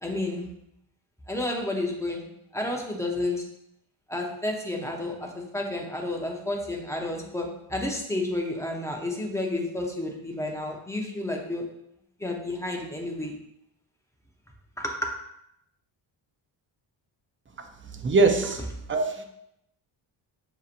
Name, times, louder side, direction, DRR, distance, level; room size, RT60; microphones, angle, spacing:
voice 1, 0.0-0.5 1.3-2.2 2.5-3.4 4.1-11.7 12.2-13.3 14.8-15.1, left 2 dB, 5° left, 0 dB, 0.7 m, -31 dB
voice 2, 18.0-19.2, right 3 dB, 25° right, 5 dB, 0.5 m, -23 dB
6.4 x 2.9 x 2.5 m, 0.79 s
cardioid pair, 95°, 49 cm